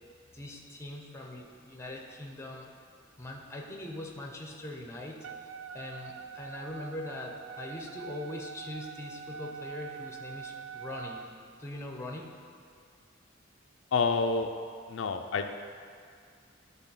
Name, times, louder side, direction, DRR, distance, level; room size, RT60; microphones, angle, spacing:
voice 1, 0.3-2.7 3.2-11.2 11.6-12.3, left 1 dB, 15° left, 0 dB, 0.9 m, -42 dB
Wind instrument woodwind instrument, 5.2-11.3, right 6 dB, 85° right, 0.3 m, -44 dB
voice 2, 13.9-14.5 14.9-15.5, left 4 dB, 80° left, 6 dB, 0.5 m, -28 dB
12.0 x 4.1 x 5.6 m, 2.2 s
head